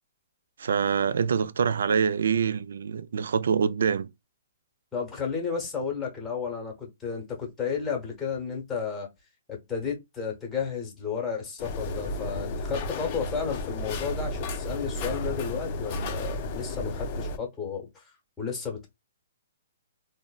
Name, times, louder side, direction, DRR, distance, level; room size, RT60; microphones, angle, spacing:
voice 1, 0.6-4.1, right 6 dB, 70° right, 0.3 m, -25 dB
voice 2, 4.9-9.1 9.5-18.9, left 6 dB, 10° left, 1.0 m, -33 dB
sound 1, 11.6-17.4, left 2 dB, 30° left, 0.4 m, -33 dB
3.7 x 2.0 x 2.2 m
hypercardioid pair, 165°, 0 cm